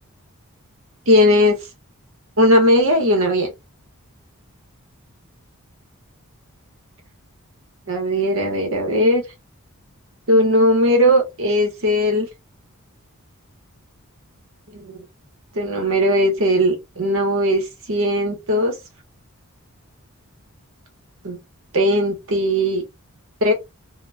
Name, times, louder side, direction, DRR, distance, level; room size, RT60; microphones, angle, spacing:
voice 1, 1.1-1.6 2.4-3.5 7.9-9.2 10.3-12.3 14.7-15.0 15.5-18.7 21.2-21.4 21.7-22.8 23.4-23.5, equal, 60° right, 0.9 m, -18 dB
2.2 x 2.1 x 3.2 m
head